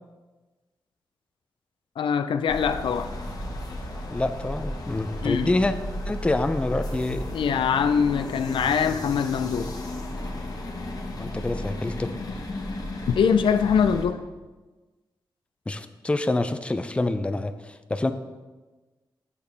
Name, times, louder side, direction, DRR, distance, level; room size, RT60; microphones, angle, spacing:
voice 1, 2.0-3.1 5.2-5.6 7.3-9.7 13.1-14.2, left 7 dB, 90° left, 10 dB, 0.4 m, -23 dB
sound 1, 2.5-14.1, left 1 dB, 50° left, 1.1 m, -34 dB
voice 2, 4.1-5.7 6.1-7.2 11.2-12.1 15.7-18.1, left 2 dB, 15° left, 9 dB, 0.4 m, -26 dB
8.2 x 6.8 x 3.4 m, 1.2 s
wide cardioid pair, 105°, 8 cm